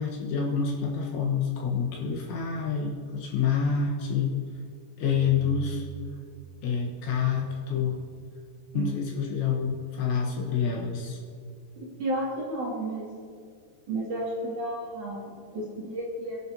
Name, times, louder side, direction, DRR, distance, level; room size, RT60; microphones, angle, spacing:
voice 1, 0.0-4.3 5.0-5.8 6.6-8.0 8.7-11.2, left 6 dB, 70° left, -1 dB, 3.4 m, -27 dB
voice 2, 11.8-13.1 13.9-16.4, right 1 dB, 45° right, -6 dB, 3.1 m, -32 dB
28.0 x 11.5 x 2.8 m, 2.2 s
omnidirectional pair, 5.8 m